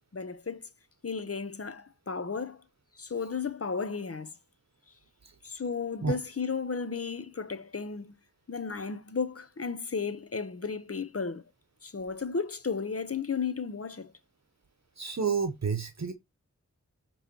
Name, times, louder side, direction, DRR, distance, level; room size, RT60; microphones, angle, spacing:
voice 1, 0.1-0.7 1.0-2.6 2.9-4.3 5.4-8.1 8.5-11.4 11.8-14.1, left 5 dB, 50° left, 0.7 m, -34 dB
voice 2, 15.0-16.1, right 5 dB, 60° right, 0.8 m, -30 dB
8.0 x 3.1 x 4.3 m
wide cardioid pair, 50°, 31 cm